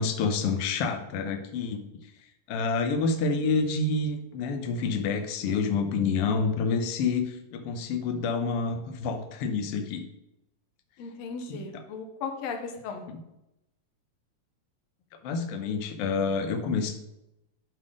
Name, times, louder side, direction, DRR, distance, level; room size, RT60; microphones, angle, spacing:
voice 1, 0.0-1.8 2.5-10.0 11.5-11.8 13.1-13.2 15.2-16.9, left 4 dB, 90° left, 5 dB, 1.3 m, -28 dB
voice 2, 11.0-13.0, left 5 dB, 70° left, 5 dB, 1.8 m, -36 dB
10.5 x 3.8 x 4.9 m, 0.87 s
omnidirectional pair, 3.8 m